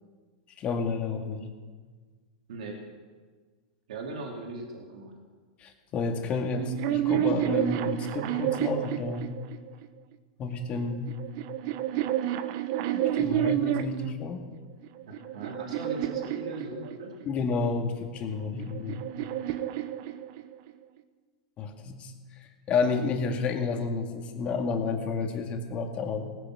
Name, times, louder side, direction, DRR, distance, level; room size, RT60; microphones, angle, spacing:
voice 1, 0.6-1.5 5.6-9.4 10.4-11.2 12.9-14.4 17.3-19.1 21.6-26.3, left 4 dB, 35° left, 3 dB, 2.2 m, -31 dB
voice 2, 2.5-2.8 3.9-5.1 15.1-17.1, right 3 dB, 80° right, 0 dB, 3.0 m, -38 dB
sound 1, 6.5-9.9 10.8-14.2 14.8-17.3 18.3-20.7, right 12 dB, 55° right, 0.9 m, -30 dB
19.0 x 9.2 x 6.2 m, 1.5 s
hypercardioid pair, 125°, 4 cm